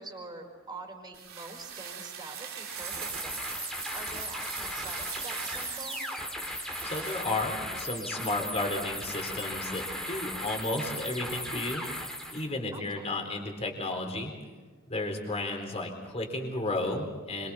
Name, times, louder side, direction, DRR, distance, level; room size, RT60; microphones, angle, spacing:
voice 1, 0.0-3.5 3.9-6.0 12.7-13.1, right 2 dB, 20° right, 1 dB, 4.8 m, -45 dB
sound 1, 1.1-7.2, right 9 dB, 85° right, 2.9 m, -41 dB
sound 2, 2.6-12.5, equal, 5° left, 3.2 m, -37 dB
voice 2, 6.8-11.8 12.3-14.3 14.9-17.5, left 2 dB, 30° left, 2 dB, 4.1 m, -33 dB
26.0 x 24.0 x 4.4 m, 1.4 s
head